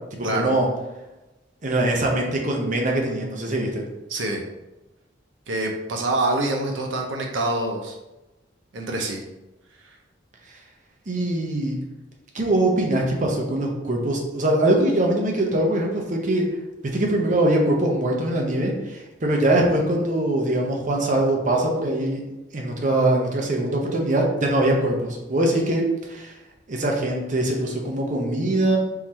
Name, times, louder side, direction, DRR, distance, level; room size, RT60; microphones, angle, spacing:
voice 1, 0.1-0.7 1.6-3.8 11.1-11.8 12.3-16.5 16.9-22.2 22.5-26.3 26.7-28.8, right 1 dB, 40° right, 0 dB, 0.7 m, -22 dB
voice 2, 4.1-4.4 5.5-8.0 8.7-9.2 9.8-10.0, right 2 dB, 80° right, 1 dB, 0.6 m, -26 dB
3.8 x 3.0 x 4.2 m, 1.0 s
head